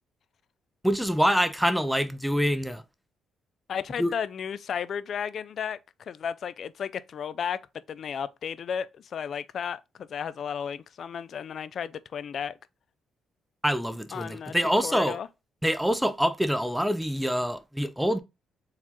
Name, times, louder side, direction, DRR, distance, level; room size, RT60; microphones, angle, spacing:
voice 1, 0.8-2.8 4.0-4.1 13.6-15.2 15.6-18.2, equal, ahead, 0.5 m, -25 dB
voice 2, 3.7-5.8 6.1-7.6 7.9-12.6 14.1-14.6 14.8-15.3, left 7 dB, 60° left, 0.4 m, -33 dB
4.7 x 3.6 x 2.8 m
cardioid pair, 90°, 0 cm